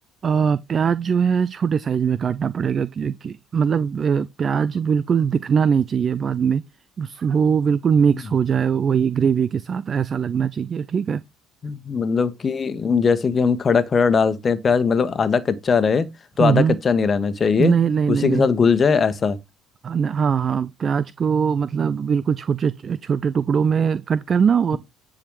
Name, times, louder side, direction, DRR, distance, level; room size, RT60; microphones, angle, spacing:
voice 1, 0.2-6.6 7.0-11.2 16.4-16.8 17.6-18.5 19.8-24.8, right 7 dB, 40° right, 0.4 m, -21 dB
voice 2, 11.6-16.1 16.4-17.7 18.1-19.4, left 5 dB, 35° left, 1.3 m, -20 dB
10.5 x 4.9 x 4.8 m
figure-of-eight pair, 55°, 0 cm